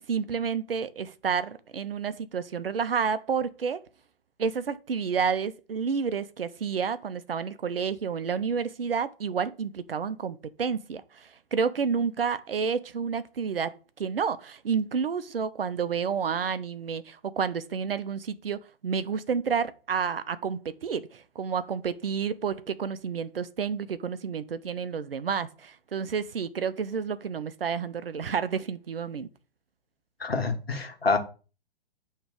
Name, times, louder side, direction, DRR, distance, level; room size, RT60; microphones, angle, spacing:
voice 1, 0.1-3.8 4.4-13.7 14.0-29.3, right 6 dB, 75° right, 0.7 m, -30 dB
voice 2, 30.2-31.2, left 4 dB, 80° left, 1.5 m, -27 dB
8.8 x 3.2 x 5.0 m
figure-of-eight pair, 115°, 30 cm